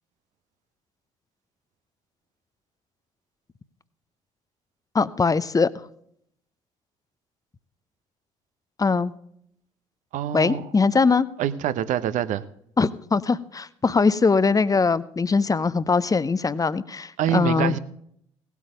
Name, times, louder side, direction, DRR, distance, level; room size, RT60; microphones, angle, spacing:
voice 1, 4.9-5.7 8.8-9.1 10.3-11.3 12.8-17.8, left 4 dB, 25° left, 0.8 m, -21 dB
voice 2, 10.1-10.7 11.4-12.4 17.2-17.8, right 11 dB, 55° right, 0.9 m, -25 dB
18.0 x 8.3 x 5.1 m
figure-of-eight pair, 45°, 15 cm